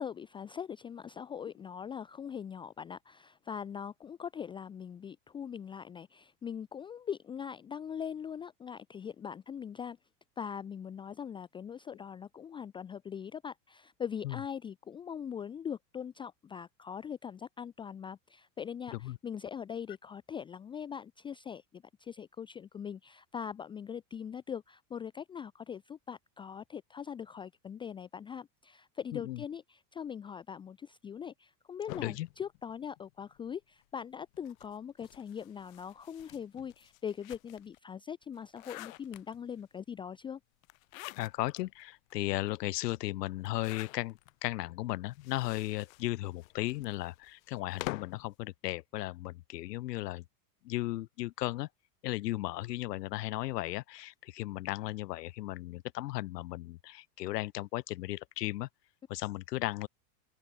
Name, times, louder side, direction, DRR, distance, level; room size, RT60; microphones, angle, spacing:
voice 1, 0.0-10.0 10.4-40.4, left 7 dB, 10° left, 0.6 m, -41 dB
sound 1, 31.9-33.5 34.3-37.8 38.2-39.6 40.6-41.6 42.1-42.2 42.4-42.5 43.4-44.3 45.1-48.3, left 22 dB, 60° left, 2.4 m, -47 dB
voice 2, 41.2-50.2 50.6-51.7 52.0-58.7 59.1-59.9, left 17 dB, 80° left, 2.7 m, -36 dB
open air
supercardioid pair, 170°, 47 cm